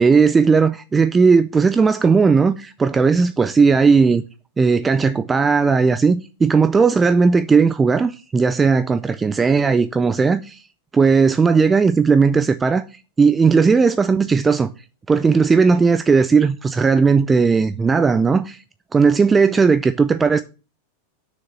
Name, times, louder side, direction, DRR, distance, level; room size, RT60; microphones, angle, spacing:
voice 1, 0.0-4.2 4.6-10.6 10.9-12.8 13.2-14.7 15.1-18.6 18.9-20.4, right 5 dB, 15° right, 0.5 m, -16 dB
6.7 x 6.4 x 7.5 m
figure-of-eight pair, 90°, 0 cm